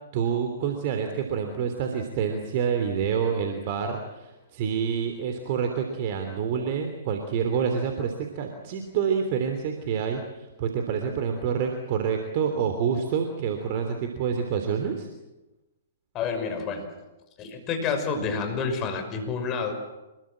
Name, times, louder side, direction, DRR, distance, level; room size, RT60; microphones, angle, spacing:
voice 1, 0.1-15.1, right 7 dB, 45° right, 5 dB, 3.2 m, -27 dB
voice 2, 16.1-16.9 17.4-19.7, left 5 dB, 30° left, 6 dB, 5.7 m, -29 dB
26.5 x 22.0 x 7.6 m, 1.0 s
figure-of-eight pair, 115°, 0 cm